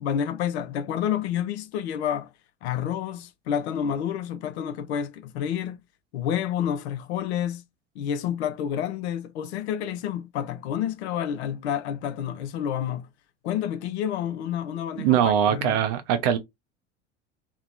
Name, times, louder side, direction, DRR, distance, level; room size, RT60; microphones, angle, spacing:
voice 1, 0.0-2.3 2.6-5.8 6.1-7.6 8.0-13.1 13.4-15.8, left 9 dB, 65° left, 0.5 m, -29 dB
voice 2, 15.0-16.4, right 9 dB, 50° right, 0.5 m, -22 dB
2.9 x 2.1 x 2.4 m
figure-of-eight pair, 70°, 36 cm